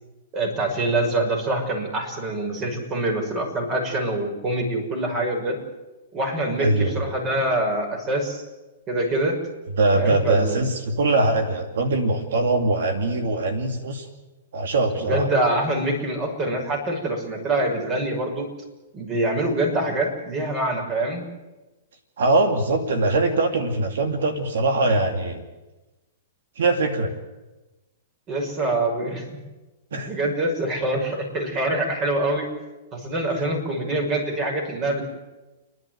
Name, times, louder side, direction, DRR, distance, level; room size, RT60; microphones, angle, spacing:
voice 1, 0.3-5.6 6.1-8.4 8.9-9.4 9.9-10.6 15.0-18.5 18.9-21.2 28.3-29.3 29.9-32.5 32.9-35.0, right 1 dB, 30° right, 2 dB, 6.0 m, -25 dB
voice 2, 6.6-7.0 9.8-14.1 14.5-15.3 22.2-25.4 26.6-27.1 29.9-30.1, right 2 dB, 80° right, 6 dB, 2.5 m, -22 dB
30.0 x 11.0 x 9.4 m, 1.1 s
hypercardioid pair, 130°, 0 cm